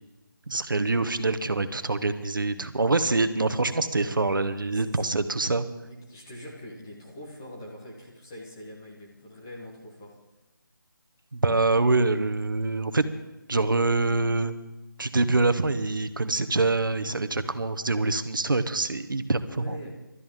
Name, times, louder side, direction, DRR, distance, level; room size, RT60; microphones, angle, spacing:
voice 1, 0.5-5.6 11.3-13.0 13.5-14.6 15.0-19.8, right 3 dB, 70° right, 10 dB, 1.2 m, -25 dB
voice 2, 4.7-5.0 5.8-10.2 11.7-11.8 19.5-20.1, left 1 dB, 10° left, -2 dB, 1.2 m, -43 dB
26.0 x 13.0 x 3.7 m, 1.1 s
figure-of-eight pair, 180°, 12 cm